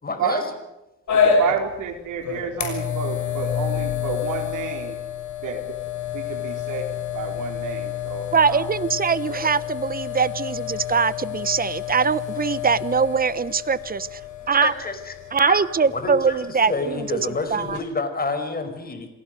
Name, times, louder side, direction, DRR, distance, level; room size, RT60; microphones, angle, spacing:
voice 1, 0.0-0.4 14.6-15.1 15.4-15.6 15.9-19.1, left 3 dB, 30° left, 8 dB, 5.3 m, -28 dB
sound 1, 1.1-17.8, left 7 dB, 70° left, 6.5 m, -29 dB
voice 2, 1.1-5.0 5.4-5.7 6.1-6.8 7.1-8.7 9.3-9.4, right 6 dB, 85° right, 5 dB, 4.1 m, -30 dB
voice 3, 8.3-14.2 14.5-14.7 15.3-17.0 17.5-17.8, right 5 dB, 30° right, 17 dB, 1.1 m, -22 dB
28.0 x 18.0 x 6.7 m, 0.96 s
cardioid pair, 90°, 30 cm